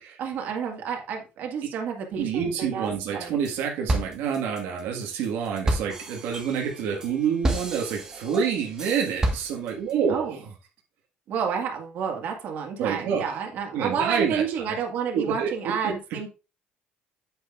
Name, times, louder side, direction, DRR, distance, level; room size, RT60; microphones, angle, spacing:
voice 1, 0.2-3.4 10.1-10.4 11.3-16.3, right 7 dB, 60° right, 2 dB, 1.8 m, -30 dB
voice 2, 2.2-10.4 12.8-13.4 13.7-14.8 15.1-16.3, right 7 dB, 90° right, 0 dB, 1.7 m, -28 dB
sound 1, 3.0-3.6 3.9-9.9, right 1 dB, 15° right, 1.5 m, -30 dB
8.4 x 8.0 x 2.5 m, 0.30 s
cardioid pair, 150°, 4 cm